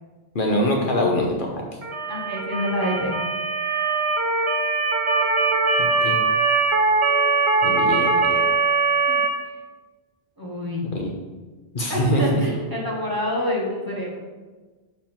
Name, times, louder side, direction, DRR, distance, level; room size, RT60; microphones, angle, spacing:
voice 1, 0.3-1.6 5.8-6.2 7.6-8.4 10.9-11.1 11.7-12.2, left 1 dB, 55° left, 0 dB, 1.0 m, -24 dB
Motor vehicle (road) / Siren, 1.8-9.3, right 4 dB, 40° right, 0.5 m, -21 dB
voice 2, 2.1-3.2 9.1-9.2 9.5-9.6 10.4-10.8 11.9-14.1, left 1 dB, 20° right, -4 dB, 1.3 m, -27 dB
7.3 x 3.5 x 4.3 m, 1.3 s
omnidirectional pair, 1.1 m